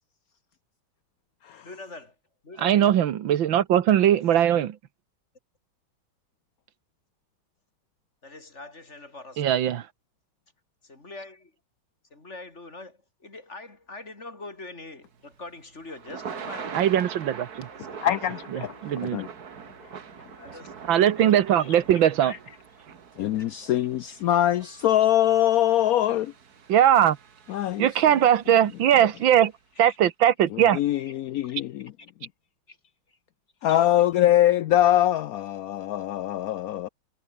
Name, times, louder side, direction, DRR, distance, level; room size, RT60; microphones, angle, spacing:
voice 1, 1.6-2.2 2.4-2.9 8.2-9.5 10.8-11.5 12.1-16.9 17.7-18.3 20.4-20.8 21.2-21.6 23.5-23.7 29.8-30.0 31.4-31.5 32.7-32.8 33.7-33.8, left 2 dB, 35° left, 3.8 m, -43 dB
voice 2, 2.6-4.8 9.4-9.9 16.7-17.7 18.5-19.2 20.9-22.4 26.7-27.2 27.8-29.5 29.8-30.8, right 10 dB, 75° right, 1.8 m, -20 dB
Thunder / Rain, 15.1-29.4, right 6 dB, 50° right, 2.1 m, -43 dB
voice 3, 18.0-18.7 19.0-19.3 23.2-26.3 27.5-27.9 30.7-31.9 33.6-36.9, left 12 dB, 75° left, 0.8 m, -23 dB
omnidirectional pair, 2.2 m